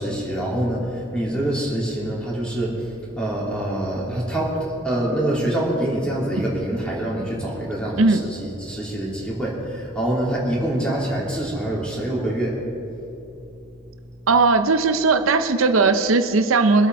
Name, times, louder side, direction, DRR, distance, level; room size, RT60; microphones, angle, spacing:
voice 1, 0.0-12.6, right 1 dB, 5° left, -5 dB, 3.0 m, -25 dB
voice 2, 14.3-16.9, right 3 dB, 80° right, 8 dB, 0.7 m, -18 dB
23.5 x 8.4 x 4.6 m, 2.9 s
head